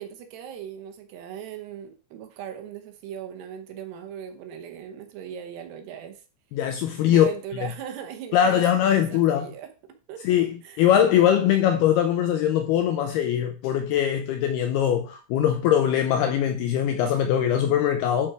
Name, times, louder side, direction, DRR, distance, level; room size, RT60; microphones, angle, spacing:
voice 1, 0.0-6.2 7.1-9.7 10.1-10.8, right 9 dB, 75° right, 2.8 m, -39 dB
voice 2, 6.5-7.3 8.3-9.5 10.3-10.5 10.8-18.3, left 10 dB, 85° left, 2.3 m, -21 dB
11.5 x 4.4 x 4.7 m
omnidirectional pair, 5.3 m